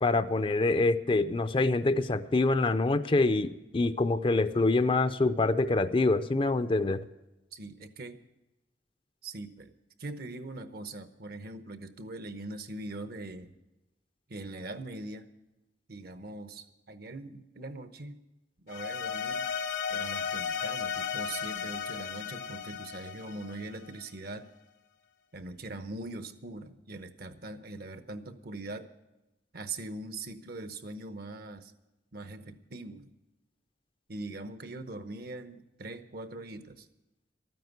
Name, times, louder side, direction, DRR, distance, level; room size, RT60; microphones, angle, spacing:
voice 1, 0.0-7.0, left 2 dB, 30° left, 12 dB, 0.5 m, -26 dB
voice 2, 7.5-8.2 9.2-9.7 10.0-13.5 14.3-15.3 15.9-18.2 18.6-19.5 19.9-24.5 25.3-28.9 29.5-31.7 32.1-33.1 34.1-36.9, right 2 dB, 60° right, 10 dB, 0.9 m, -41 dB
sound 1, 18.7-24.0, left 7 dB, 75° left, 1.2 m, -35 dB
13.0 x 9.3 x 8.0 m, 0.97 s
head